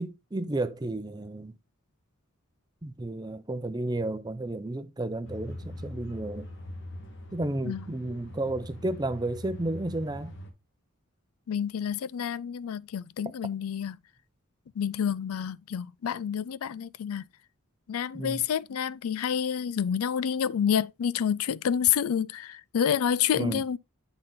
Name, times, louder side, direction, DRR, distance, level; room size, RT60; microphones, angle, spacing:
voice 1, 0.0-1.6 2.8-6.5 7.3-10.3 18.1-18.4 23.4-23.6, right 2 dB, 20° right, 0.5 m, -32 dB
sound 1, 5.2-10.5, left 1 dB, 55° left, 1.6 m, -42 dB
voice 2, 11.5-14.0 14.8-17.2 17.9-23.8, left 8 dB, 85° left, 0.4 m, -28 dB
8.7 x 4.0 x 3.8 m
head